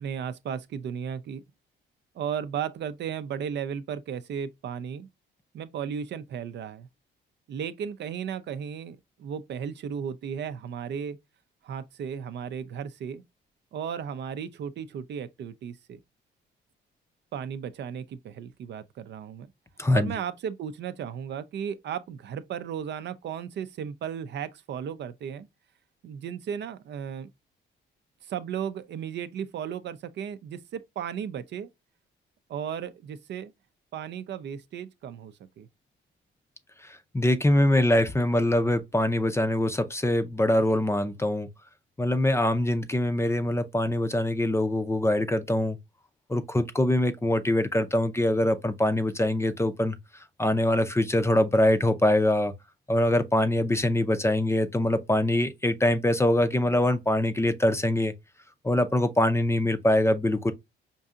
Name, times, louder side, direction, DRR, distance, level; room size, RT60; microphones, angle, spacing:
voice 1, 0.0-1.4 2.2-5.1 5.5-6.9 7.5-11.2 11.6-13.2 13.7-16.0 17.3-19.5 19.9-25.5 26.0-27.3 28.3-31.7 32.5-33.5 33.9-35.7, right 8 dB, 60° right, 0.5 m, -35 dB
voice 2, 19.8-20.1 37.1-41.5 42.0-45.8 46.3-50.0 50.4-52.5 52.9-58.1 58.6-60.5, left 1 dB, 15° left, 0.5 m, -23 dB
5.3 x 2.7 x 2.4 m
cardioid pair, 90°, 20 cm